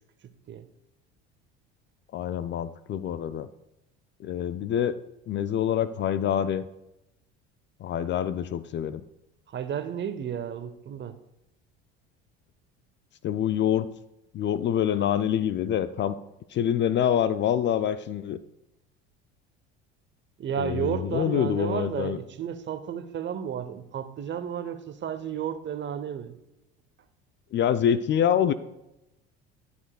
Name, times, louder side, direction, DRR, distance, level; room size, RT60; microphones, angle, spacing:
voice 1, 2.1-3.5 4.2-5.0 5.3-6.6 7.8-9.0 13.2-13.9 14.3-16.2 16.5-18.4 20.6-22.2 27.5-28.5, left 9 dB, 40° left, 0.4 m, -26 dB
voice 2, 9.5-11.2 20.4-26.4, right 8 dB, 35° right, 0.8 m, -32 dB
12.5 x 6.9 x 2.3 m
hypercardioid pair, 70°, 31 cm